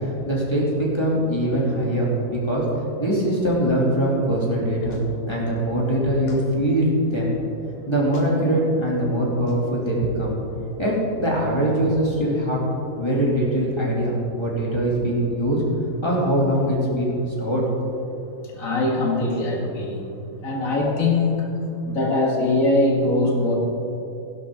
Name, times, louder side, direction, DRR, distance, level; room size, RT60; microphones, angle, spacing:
voice 1, 0.0-2.6 3.0-5.0 5.3-7.3 7.9-10.3 10.8-12.6 13.0-15.6 16.0-17.6, right 1 dB, 20° left, -5 dB, 2.7 m, -22 dB
Clapping, 4.9-5.1 6.3-6.4 7.7-7.8 8.1-8.4 9.5-9.6, left 2 dB, 45° left, 1.5 m, -40 dB
voice 2, 18.4-20.0 20.4-21.5 21.8-23.6, left 2 dB, 65° left, -1 dB, 2.3 m, -22 dB
16.0 x 11.5 x 3.8 m, 2.9 s
omnidirectional pair, 1.6 m